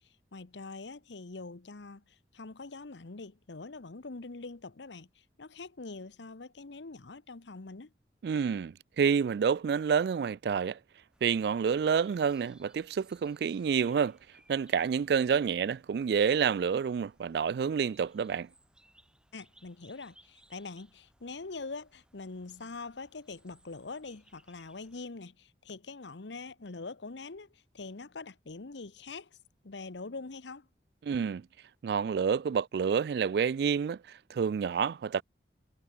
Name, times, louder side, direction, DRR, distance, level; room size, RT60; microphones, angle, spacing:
voice 1, 0.0-7.9 19.3-29.3 29.6-30.7, left 3 dB, 85° left, 1.0 m, -44 dB
voice 2, 8.2-10.8 11.2-14.2 14.5-18.5 31.0-31.5 31.8-34.0 34.3-35.2, right 6 dB, 60° right, 0.3 m, -28 dB
sound 1, 11.1-25.1, right 1 dB, 5° right, 4.4 m, -65 dB
head